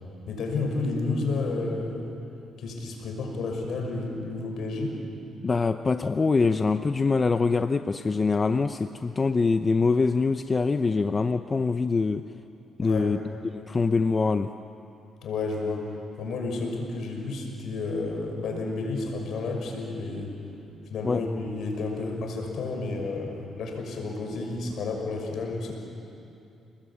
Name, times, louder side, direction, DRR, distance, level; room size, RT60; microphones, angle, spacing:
voice 1, 0.3-2.1 2.6-5.0 12.8-13.2 15.2-20.3 20.9-25.7, left 3 dB, 70° left, 2 dB, 6.0 m, -31 dB
voice 2, 5.4-12.3 12.8-13.2 13.5-14.5 21.0-21.2, left 4 dB, 30° left, 9 dB, 0.7 m, -24 dB
29.5 x 20.5 x 8.7 m, 2.8 s
cardioid pair, 90°, 0 cm